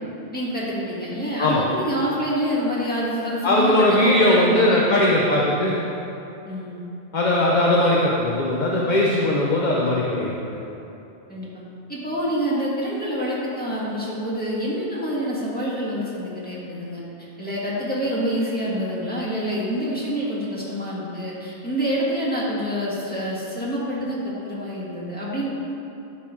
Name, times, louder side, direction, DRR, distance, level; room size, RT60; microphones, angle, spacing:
voice 1, 0.3-5.3 6.5-6.8 11.3-11.5 11.9-17.0 17.4-25.5, equal, 10° left, -8 dB, 1.6 m, -27 dB
voice 2, 3.4-5.8 7.1-10.3, left 1 dB, 45° left, -4 dB, 0.8 m, -19 dB
12.0 x 4.5 x 3.6 m, 3.0 s
omnidirectional pair, 1.1 m